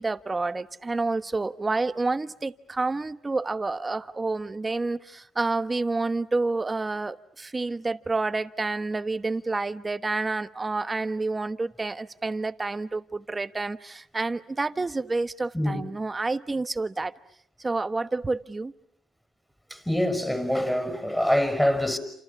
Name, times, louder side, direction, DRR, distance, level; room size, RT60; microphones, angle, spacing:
voice 1, 0.0-17.1 17.6-18.7, right 3 dB, 25° right, 1.3 m, -29 dB
voice 2, 19.7-22.0, left 1 dB, 5° left, 6.4 m, -25 dB
29.5 x 28.0 x 7.2 m
cardioid pair, 90°, 0 cm